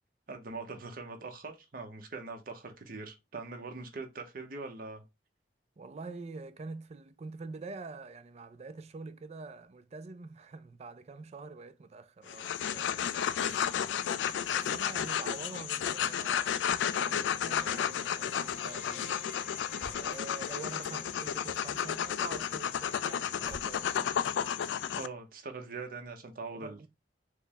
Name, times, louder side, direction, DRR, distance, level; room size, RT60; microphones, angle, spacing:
voice 1, 0.3-5.0 25.0-26.9, right 3 dB, 50° right, 0.8 m, -42 dB
voice 2, 5.8-13.8 14.5-19.1 19.9-24.0 26.5-26.9, right 3 dB, 35° right, 0.4 m, -46 dB
sound 1, 12.3-25.1, left 8 dB, 80° left, 0.3 m, -32 dB
sound 2, 16.5-22.2, equal, 85° right, 0.9 m, -54 dB
Motor vehicle (road), 19.7-20.4 23.4-24.0, equal, 20° left, 0.9 m, -49 dB
4.5 x 2.1 x 3.4 m
head